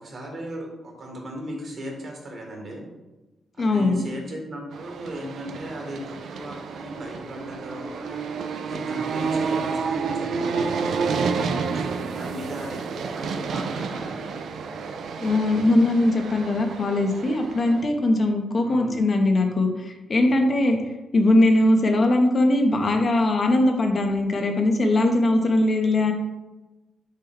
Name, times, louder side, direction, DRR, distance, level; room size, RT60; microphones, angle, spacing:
voice 1, 0.0-2.9 3.6-8.2 8.6-11.2 11.7-14.2 18.6-19.0, equal, 55° right, 0 dB, 1.4 m, -37 dB
voice 2, 3.6-4.0 15.2-26.1, left 2 dB, 45° left, 4 dB, 0.7 m, -21 dB
sound 1, 4.7-17.8, right 5 dB, 75° right, 0.4 m, -30 dB
6.4 x 2.2 x 3.5 m, 1.1 s
cardioid pair, 65°, 0 cm